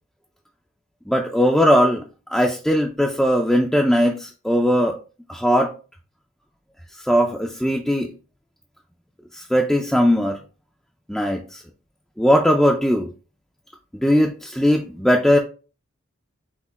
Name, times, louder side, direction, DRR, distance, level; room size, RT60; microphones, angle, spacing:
voice 1, 1.1-2.0 2.3-5.0 5.3-5.7 7.0-8.1 9.3-10.4 11.1-11.6 12.2-13.1 14.0-15.4, equal, ahead, 0.3 m, -19 dB
5.9 x 2.1 x 4.0 m
head